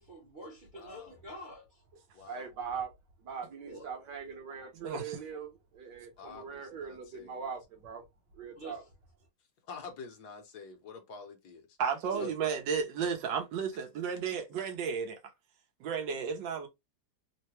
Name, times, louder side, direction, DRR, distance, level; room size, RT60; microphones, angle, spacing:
voice 1, 0.0-1.8 3.6-3.9 8.6-8.9 12.1-12.3, right 1 dB, 40° right, 0.7 m, -46 dB
voice 2, 0.7-1.2 2.1-2.5 6.2-7.5 9.7-11.8 12.2-12.3 13.7-13.8, left 4 dB, 65° left, 1.3 m, -47 dB
voice 3, 2.3-2.9 3.2-8.0 8.3-8.8, right 6 dB, 70° right, 1.6 m, -41 dB
voice 4, 4.7-5.2 11.8-15.2 15.8-16.7, right 6 dB, 85° right, 1.5 m, -33 dB
3.8 x 2.1 x 2.8 m
omnidirectional pair, 2.0 m